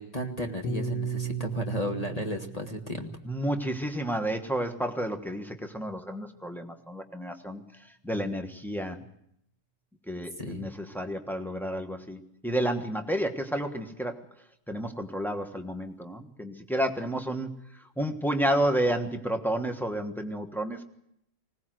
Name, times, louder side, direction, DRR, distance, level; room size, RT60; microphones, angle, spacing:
voice 1, 0.0-3.1 10.4-10.6, left 1 dB, 20° left, 4 dB, 1.2 m, -34 dB
Piano, 0.6-5.1, right 5 dB, 80° left, 3.4 m, -36 dB
voice 2, 3.2-7.6 8.0-9.0 10.1-14.2 14.7-17.5 18.0-20.8, right 1 dB, ahead, 3 dB, 0.7 m, -31 dB
20.5 x 18.0 x 7.7 m, 0.75 s
omnidirectional pair, 2.4 m